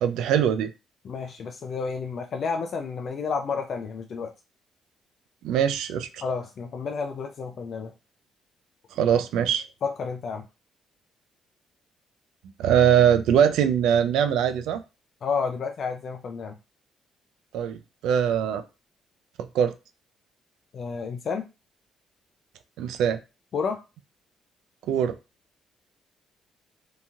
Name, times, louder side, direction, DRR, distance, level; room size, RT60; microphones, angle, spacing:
voice 1, 0.0-0.7 5.4-6.2 9.0-9.6 12.6-14.8 17.5-18.6 19.5-19.7 22.8-23.2 24.9-25.1, right 9 dB, 90° right, 10 dB, 0.3 m, -22 dB
voice 2, 1.0-4.3 6.2-7.9 9.8-10.4 15.2-16.6 20.7-21.4 23.5-23.8, left 5 dB, 55° left, 4 dB, 0.4 m, -30 dB
2.8 x 2.7 x 2.4 m, 0.28 s
cardioid pair, 90°, 0 cm